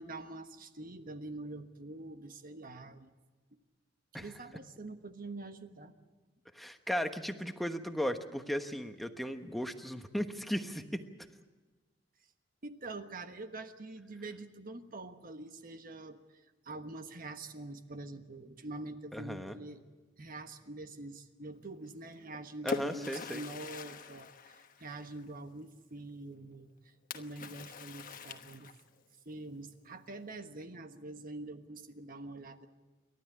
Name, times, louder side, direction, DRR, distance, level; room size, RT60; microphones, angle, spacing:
voice 1, 0.0-3.1 4.1-5.9 12.6-16.2 16.6-19.8 20.2-26.7 27.1-28.7 29.2-32.7, right 2 dB, 50° right, 8 dB, 1.3 m, -45 dB
voice 2, 6.5-11.0 19.1-19.6 22.6-23.4, equal, ahead, 6 dB, 1.2 m, -36 dB
Splash splatter, 22.1-25.3 27.1-29.0, left 4 dB, 45° left, 1.2 m, -43 dB
28.5 x 12.5 x 9.8 m, 1.2 s
head